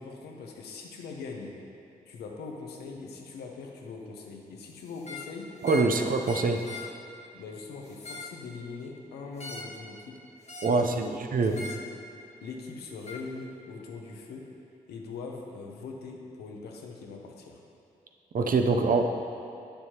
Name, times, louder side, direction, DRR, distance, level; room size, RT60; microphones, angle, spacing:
voice 1, 0.0-1.6 2.1-5.7 5.9-6.0 6.4-6.6 7.3-10.2 10.6-11.1 11.5-12.1 12.4-14.5 14.9-17.6, left 4 dB, 85° left, 1 dB, 0.8 m, -41 dB
sound 1, 5.0-5.3 5.6-6.0 6.2-6.9 7.8-8.4 9.4-9.8 10.5-10.8 11.5-11.9 13.1-13.2, left 1 dB, 40° left, 1.0 m, -41 dB
voice 2, 5.6-6.6 10.6-11.5 18.3-19.1, right 3 dB, 60° right, 5 dB, 0.6 m, -24 dB
8.8 x 6.8 x 2.9 m, 2.7 s
supercardioid pair, 45°, 16 cm